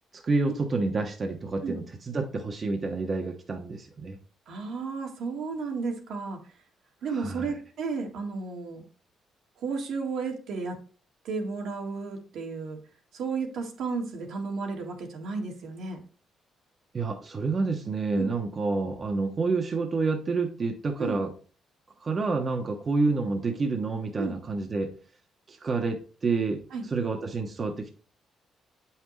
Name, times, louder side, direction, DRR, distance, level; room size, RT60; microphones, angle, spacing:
voice 1, 0.1-1.8 2.1-4.2 7.1-7.5 16.9-21.3 22.0-24.9 25.5-26.6 26.9-27.9, right 3 dB, 40° right, 3 dB, 1.0 m, -28 dB
voice 2, 4.5-6.4 7.0-8.8 9.6-10.8 11.2-12.8 13.1-16.0 18.1-18.3 21.0-21.2 24.2-24.4 26.7-26.8, right 4 dB, 75° right, 1 dB, 1.8 m, -33 dB
8.0 x 5.7 x 3.2 m, 0.38 s
cardioid pair, 90°, 0 cm